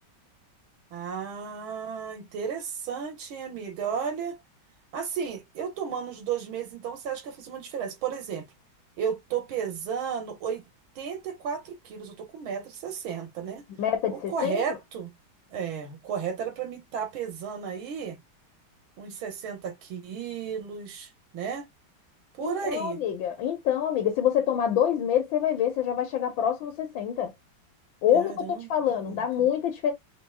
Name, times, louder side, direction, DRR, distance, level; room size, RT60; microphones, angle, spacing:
voice 1, 0.9-4.4 4.9-8.5 9.0-10.6 11.0-13.6 14.1-15.1 15.5-18.2 19.0-21.7 22.3-23.0 28.1-29.2, right 7 dB, 85° right, 2.1 m, -33 dB
voice 2, 13.8-14.8 22.4-27.3 28.0-28.3 28.7-29.9, left 9 dB, 75° left, 1.7 m, -26 dB
5.9 x 3.0 x 2.2 m
omnidirectional pair, 2.2 m